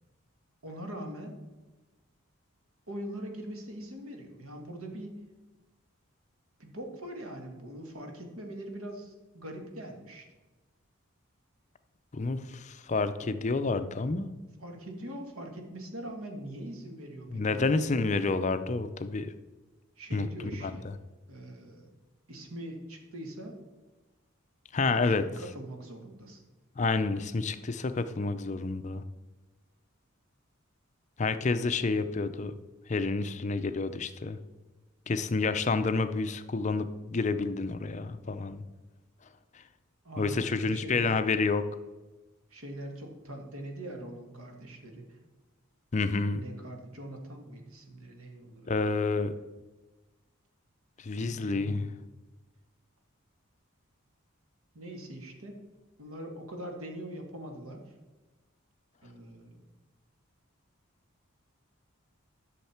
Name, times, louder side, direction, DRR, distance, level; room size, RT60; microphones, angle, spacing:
voice 1, 0.6-1.4 2.9-5.2 6.6-10.3 14.6-17.6 20.0-20.9 21.3-21.9 22.3-23.6 24.9-26.4 40.0-41.1 42.5-45.2 46.4-49.1 51.2-52.0 54.7-55.6 56.0-58.0 59.0-59.6, right 1 dB, 85° right, 3 dB, 1.8 m, -42 dB
voice 2, 12.1-14.3 17.3-19.3 20.1-20.3 20.6-20.7 24.7-25.2 26.8-29.0 31.2-32.5 32.9-34.4 35.1-38.6 39.5-39.6 40.2-41.6 45.9-46.4 48.7-49.3 51.0-51.9, left 3 dB, 35° left, 10 dB, 0.5 m, -29 dB
11.5 x 6.5 x 4.4 m, 1.2 s
head